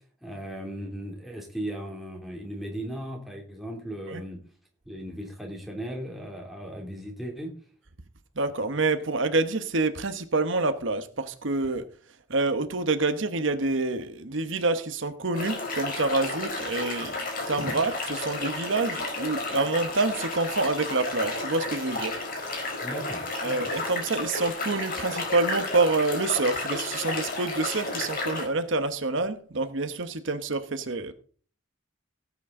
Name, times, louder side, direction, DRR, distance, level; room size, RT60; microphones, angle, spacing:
voice 1, 0.2-4.4 4.9-7.5 22.8-23.6, right 1 dB, ahead, 2.7 m, -37 dB
voice 2, 8.4-11.9 12.3-17.2 17.5-22.2 23.4-31.1, right 3 dB, 70° right, 1.0 m, -27 dB
sound 1, 15.3-28.4, left 2 dB, 45° left, 4.2 m, -32 dB
17.5 x 8.4 x 3.7 m
head